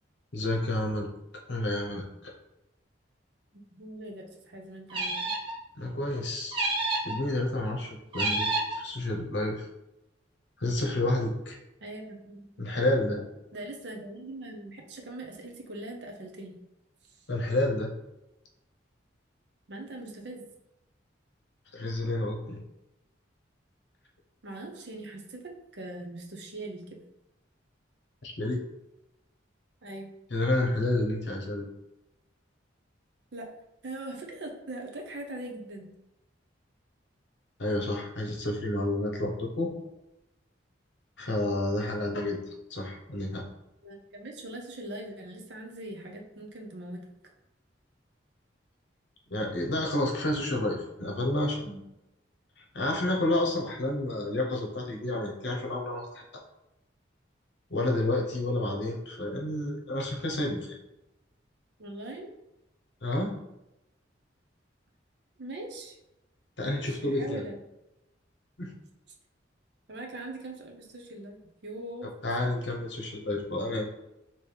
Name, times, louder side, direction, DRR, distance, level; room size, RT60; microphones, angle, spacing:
voice 1, 0.3-1.1 1.5-2.3 5.8-6.6 7.0-8.5 8.7-9.7 10.6-11.6 12.6-13.2 17.3-17.9 21.7-22.6 28.2-28.6 30.3-31.6 37.6-39.7 41.2-43.4 49.3-51.8 52.6-56.2 57.7-60.7 63.0-63.4 66.6-67.4 68.6-68.7 72.2-73.8, left 1 dB, 65° left, 1 dB, 0.9 m, -30 dB
voice 2, 3.5-5.3 11.8-12.8 13.5-16.6 17.1-17.2 19.7-20.5 24.4-25.4 25.7-27.0 29.8-30.1 33.3-33.5 33.8-35.9 43.8-47.0 61.8-62.3 65.4-66.0 66.6-67.6 69.9-72.1, right 1 dB, 60° right, 2 dB, 0.7 m, -41 dB
sound 1, 4.9-5.6 6.5-7.2 8.1-8.8, right 2 dB, 25° right, 0.7 m, -29 dB
4.6 x 3.0 x 3.4 m, 0.89 s
head